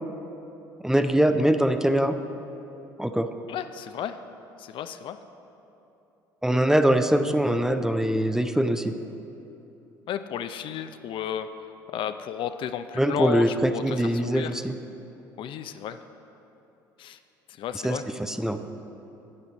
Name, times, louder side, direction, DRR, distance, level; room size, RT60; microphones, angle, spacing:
voice 1, 0.8-2.2 3.0-3.3 6.4-9.0 13.0-14.7 17.8-18.6, right 1 dB, 5° right, 8 dB, 0.5 m, -23 dB
voice 2, 3.5-4.2 4.6-5.2 10.1-11.5 11.9-14.6 15.4-16.0 17.0-17.2 17.6-18.1, left 9 dB, 50° left, 10 dB, 0.4 m, -33 dB
11.0 x 8.3 x 4.0 m, 3.0 s
hypercardioid pair, 65°, 11 cm